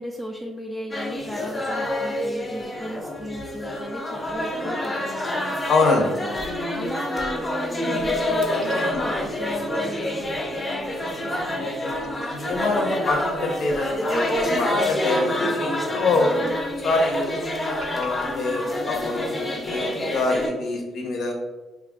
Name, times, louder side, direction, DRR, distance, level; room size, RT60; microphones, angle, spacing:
voice 1, 0.0-5.6 6.2-6.5 6.7-11.7 16.1-16.5, equal, ahead, -1 dB, 0.4 m, -36 dB
sound 1, 0.9-20.5, left 1 dB, 25° left, 0.7 m, -27 dB
voice 2, 5.7-6.1 12.3-16.3 16.8-17.3 17.9-21.3, left 3 dB, 70° left, 2 dB, 0.8 m, -25 dB
sound 2, 8.4-10.1 10.5-10.6 10.9-12.7 12.9-13.0 13.5-15.1 15.8-18.1, right 3 dB, 75° right, 0.7 m, -44 dB
3.2 x 2.4 x 3.6 m, 1.2 s
cardioid pair, 90°, 0 cm